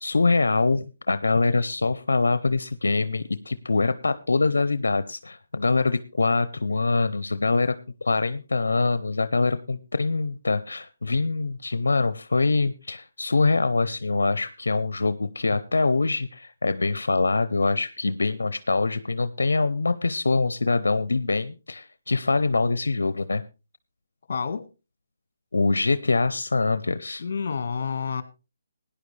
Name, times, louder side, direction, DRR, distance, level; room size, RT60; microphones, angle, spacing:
voice 1, 0.0-23.4 25.5-27.2, left 3 dB, 85° left, 14 dB, 0.7 m, -24 dB
voice 2, 24.3-24.7 27.2-28.2, left 5 dB, 55° left, 12 dB, 1.6 m, -29 dB
17.5 x 10.0 x 3.3 m, 0.29 s
hypercardioid pair, 160°, 0 cm